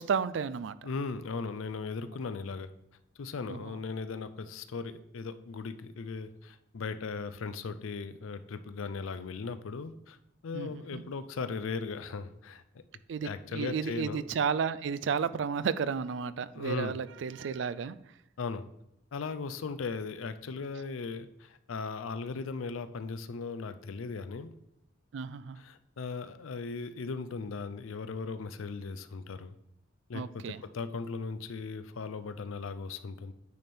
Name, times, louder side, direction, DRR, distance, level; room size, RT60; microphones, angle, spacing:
voice 1, 0.0-0.8 3.5-3.7 10.5-11.0 13.1-18.0 25.1-25.6 30.1-30.6, right 6 dB, 65° right, 15 dB, 0.3 m, -32 dB
voice 2, 0.8-2.7 3.2-10.2 10.4-12.8 13.2-14.2 16.5-17.0 18.4-18.6 19.1-24.5 25.6-29.5 30.1-33.3, left 4 dB, 80° left, 12 dB, 0.5 m, -38 dB
9.4 x 3.4 x 4.3 m, 0.81 s
head